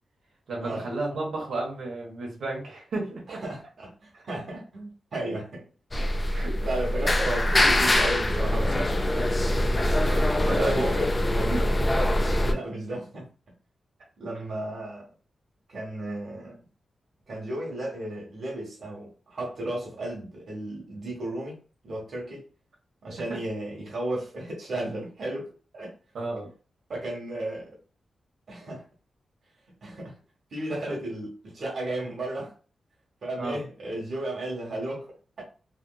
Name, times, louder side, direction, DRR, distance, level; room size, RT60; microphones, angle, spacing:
voice 1, 0.5-3.4 6.3-6.5 10.0-10.9 11.5-11.6 23.1-23.4 26.1-26.5 30.7-31.0 33.4-33.6, right 2 dB, 90° right, 1.2 m, -32 dB
voice 2, 3.3-5.6 6.5-9.3 10.6-11.7 12.2-13.3 14.2-15.1 15.7-16.6 17.3-21.6 21.8-22.4 23.0-25.5 25.7-25.9 26.9-27.8 28.5-28.8 29.8-30.2 30.5-32.5 33.2-35.4, right 1 dB, 55° right, 1.4 m, -34 dB
sound 1, 5.9-12.5, left 1 dB, 20° left, 0.3 m, -24 dB
3.4 x 2.9 x 2.3 m
wide cardioid pair, 145°, 0 cm